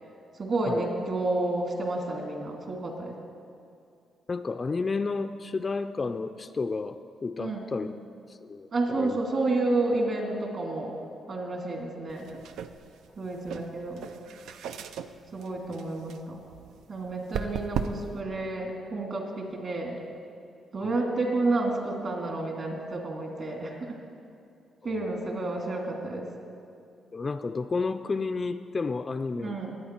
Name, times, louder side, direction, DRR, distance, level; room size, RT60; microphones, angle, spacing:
voice 1, 0.4-3.2 7.4-7.7 8.7-11.0 11.3-12.3 13.2-14.1 15.3-16.4 16.9-20.0 20.7-23.9 24.8-26.3 29.4-29.8, right 2 dB, 45° right, 1 dB, 2.3 m, -30 dB
voice 2, 4.3-7.9 8.3-9.2 15.7-15.8 20.8-21.0 24.8-25.1 27.1-29.6, left 4 dB, 30° left, 9 dB, 0.4 m, -32 dB
sound 1, 12.1-18.2, right 7 dB, 85° right, 0.5 m, -38 dB
20.5 x 8.8 x 4.4 m, 2.5 s
cardioid pair, 120°, 0 cm